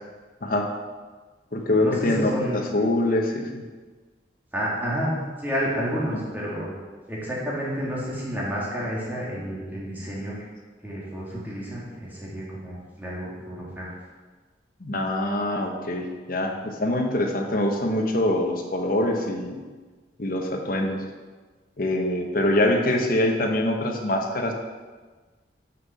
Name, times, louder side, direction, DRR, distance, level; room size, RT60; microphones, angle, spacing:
voice 1, 0.4-0.7 1.5-3.5 14.8-19.6 20.2-21.0 21.8-24.5, left 1 dB, 55° left, 2 dB, 1.0 m, -24 dB
voice 2, 1.6-2.6 4.5-6.7 7.1-10.4 10.8-13.9, equal, 10° right, -6 dB, 2.1 m, -30 dB
6.5 x 5.6 x 5.6 m, 1.4 s
head